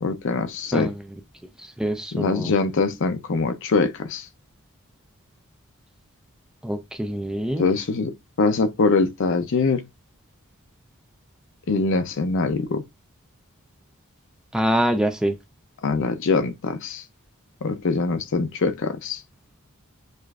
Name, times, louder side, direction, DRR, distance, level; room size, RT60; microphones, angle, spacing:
voice 1, 0.0-0.9 2.1-4.3 7.6-9.8 11.7-12.8 15.8-17.0 17.6-19.2, left 4 dB, 60° left, 0.5 m, -23 dB
voice 2, 1.8-2.5 6.6-7.7 14.5-15.3, right 1 dB, 5° right, 0.3 m, -24 dB
6.5 x 2.5 x 2.3 m
head